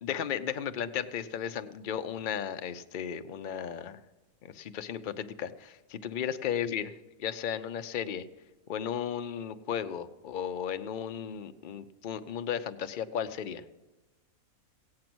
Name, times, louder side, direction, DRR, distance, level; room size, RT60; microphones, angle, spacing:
voice 1, 0.0-4.0 4.5-6.9 7.2-8.3 8.7-13.6, left 8 dB, 50° left, 10 dB, 0.6 m, -35 dB
16.5 x 8.6 x 6.1 m, 1.1 s
omnidirectional pair, 1.4 m